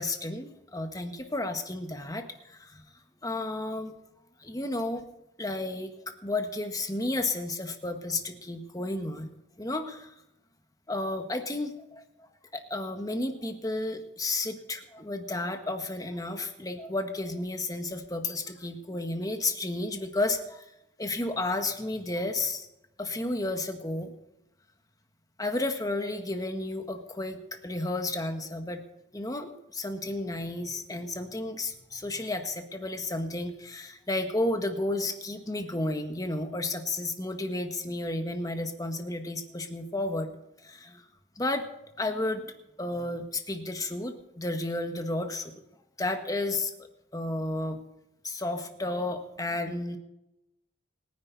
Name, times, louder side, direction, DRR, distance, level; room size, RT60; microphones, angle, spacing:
voice 1, 0.0-2.8 3.2-3.9 4.4-5.0 5.4-9.3 9.6-10.1 10.9-12.0 12.5-20.6 21.0-22.7 23.0-24.1 25.4-28.8 29.1-40.3 40.6-41.0 41.4-41.7 42.0-45.5 46.0-46.7 47.1-47.8 48.2-50.0, left 2 dB, 20° left, 6 dB, 1.6 m, -32 dB
27.0 x 10.5 x 4.1 m, 0.89 s
head